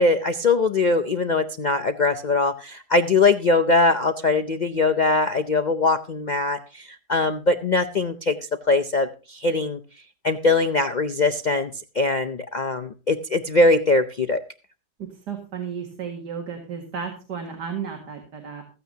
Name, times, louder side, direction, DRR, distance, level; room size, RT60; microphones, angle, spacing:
voice 1, 0.0-8.4 8.7-9.8 10.2-11.7 12.0-14.4, left 3 dB, 75° left, 6 dB, 0.4 m, -21 dB
voice 2, 15.0-18.6, right 6 dB, 90° right, 3 dB, 2.6 m, -33 dB
15.5 x 15.0 x 2.8 m, 0.33 s
omnidirectional pair, 1.7 m